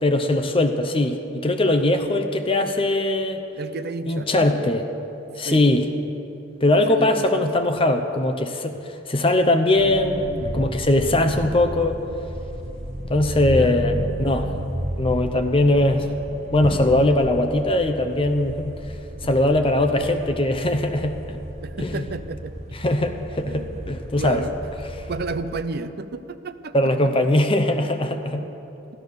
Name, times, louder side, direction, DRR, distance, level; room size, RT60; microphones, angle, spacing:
voice 1, 0.0-3.4 4.1-4.9 5.4-5.9 6.6-12.0 13.1-14.6 15.0-16.0 16.5-18.7 19.2-21.4 21.8-22.0 22.8-24.4 26.7-28.4, left 1 dB, 25° left, 7 dB, 0.8 m, -21 dB
voice 2, 3.6-4.7 5.4-5.6 6.8-7.5 9.7-10.6 13.4-13.8 19.5-20.0 21.6-22.6 23.5-23.9 24.2-24.6 25.1-26.7 28.4-28.5, right 3 dB, 50° right, 12 dB, 0.6 m, -33 dB
sound 1, 9.8-25.4, equal, 35° right, 1.0 m, -33 dB
15.0 x 12.5 x 6.8 m, 3.0 s
head